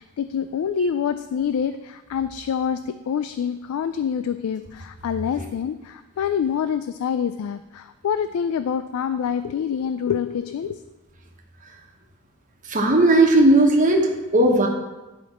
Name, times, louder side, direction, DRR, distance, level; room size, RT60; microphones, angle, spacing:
voice 1, 0.0-10.8, left 7 dB, 75° left, 11 dB, 0.3 m, -26 dB
voice 2, 12.7-14.7, right 1 dB, 35° right, 1 dB, 1.2 m, -16 dB
9.9 x 5.2 x 4.3 m, 1.1 s
head